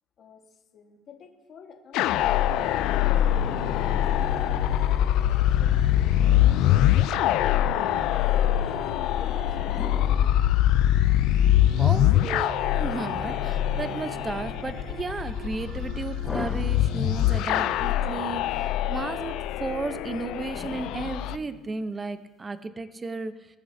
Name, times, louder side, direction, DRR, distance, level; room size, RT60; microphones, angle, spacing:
voice 1, 0.2-10.7, left 6 dB, 50° left, 2 dB, 1.5 m, -49 dB
sound 1, 1.9-21.4, left 12 dB, 75° left, 0.4 m, -24 dB
sound 2, 2.0-19.2, right 8 dB, 55° right, 0.4 m, -43 dB
sound 3, 9.2-11.5 13.2-14.4 16.2-17.6 20.6-22.0, left 4 dB, 30° left, 1.0 m, -41 dB
voice 2, 11.8-23.5, right 3 dB, 25° right, 11 dB, 0.7 m, -34 dB
20.5 x 7.9 x 2.7 m, 1.2 s
supercardioid pair, 95°, 0 cm